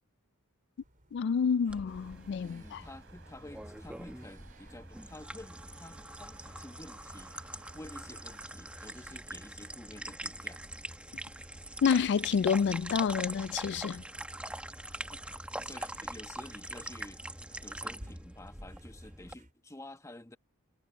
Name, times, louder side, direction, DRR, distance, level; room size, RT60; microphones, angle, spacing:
sound 1, 0.8-19.5, right 1 dB, 40° right, 5.1 m, -60 dB
voice 1, 1.1-2.8 11.8-14.0, left 6 dB, 55° left, 0.3 m, -28 dB
sound 2, 1.7-19.3, right 1 dB, 5° right, 1.1 m, -43 dB
sound 3, 1.9-8.5, right 5 dB, 60° right, 3.2 m, -60 dB
voice 2, 2.4-10.6 15.1-15.3 15.6-17.2 17.6-20.4, left 1 dB, 15° left, 1.2 m, -50 dB
head